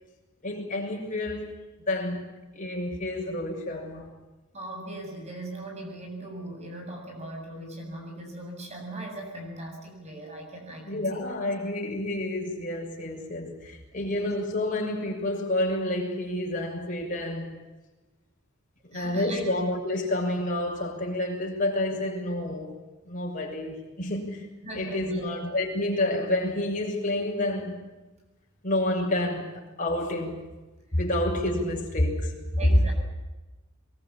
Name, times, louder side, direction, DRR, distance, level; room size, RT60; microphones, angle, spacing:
voice 1, 0.4-1.5 1.9-2.2 2.5-4.1 10.8-17.5 18.8-22.7 23.0-27.8 28.6-30.5 30.9-32.4, left 1 dB, 40° left, 6.7 m, -29 dB
voice 2, 4.5-11.2 13.9-14.2 18.9-19.4 21.8-22.0 24.6-25.3 30.9-31.0 32.6-32.9, right 2 dB, 30° right, 7.7 m, -39 dB
23.5 x 23.0 x 8.9 m
head